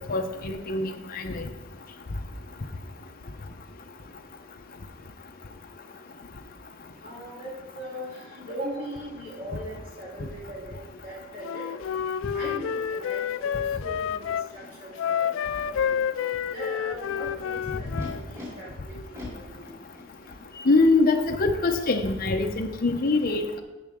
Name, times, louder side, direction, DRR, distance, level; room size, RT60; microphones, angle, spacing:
voice 1, 0.1-1.4 20.7-23.6, left 3 dB, 45° left, 4 dB, 0.7 m, -23 dB
voice 2, 7.0-11.8 12.3-16.0 16.5-19.7, equal, 45° right, -7 dB, 2.9 m, -40 dB
Wind instrument woodwind instrument, 11.4-14.5 15.0-18.2, left 8 dB, 70° left, 0.3 m, -29 dB
Animal, 14.6-14.7 15.4-16.0 16.8-18.5 19.1-20.4, left 1 dB, 15° right, 3.6 m, -45 dB
13.5 x 7.8 x 3.6 m, 1.1 s
head